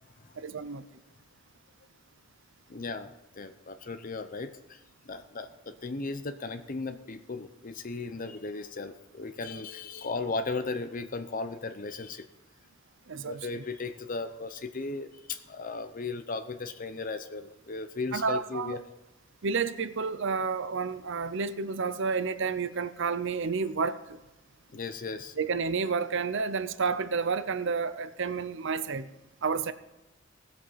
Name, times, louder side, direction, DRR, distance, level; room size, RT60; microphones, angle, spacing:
voice 1, 0.4-0.8 13.1-13.5 18.1-18.8 19.4-24.2 25.4-29.1 29.4-29.7, right 5 dB, 60° right, 0.6 m, -30 dB
voice 2, 2.7-12.3 13.1-18.8 24.7-25.4, left 3 dB, 40° left, 0.7 m, -36 dB
17.5 x 7.9 x 5.7 m
head